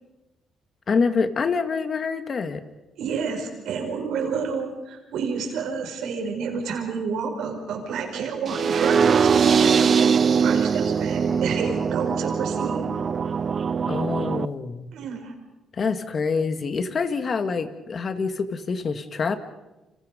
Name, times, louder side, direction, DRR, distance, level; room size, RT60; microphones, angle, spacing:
voice 1, 0.9-2.6 13.9-14.9 15.7-19.4, left 5 dB, 45° left, 9 dB, 2.1 m, -26 dB
voice 2, 3.0-10.1 10.4-12.9 14.9-15.3, right 5 dB, 80° right, 3 dB, 5.6 m, -30 dB
sound 1, 8.5-14.5, right 6 dB, 50° right, 0.7 m, -21 dB
29.5 x 26.0 x 5.3 m, 1.0 s
cardioid pair, 90°, 0 cm